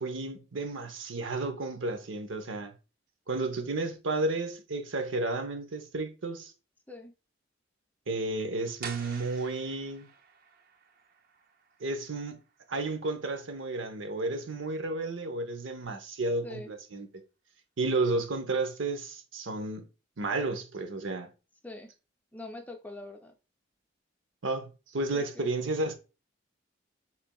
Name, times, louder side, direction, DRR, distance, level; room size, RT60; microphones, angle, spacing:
voice 1, 0.0-2.7 3.3-6.5 8.1-10.1 11.8-12.4 12.7-17.1 17.8-19.9 20.2-21.3 24.4-25.9, right 2 dB, 85° right, 0.8 m, -32 dB
sound 1, 8.8-14.5, right 6 dB, 50° right, 0.5 m, -49 dB
voice 2, 22.3-23.3 25.1-25.5, left 2 dB, 10° left, 0.4 m, -43 dB
5.7 x 3.3 x 2.2 m
head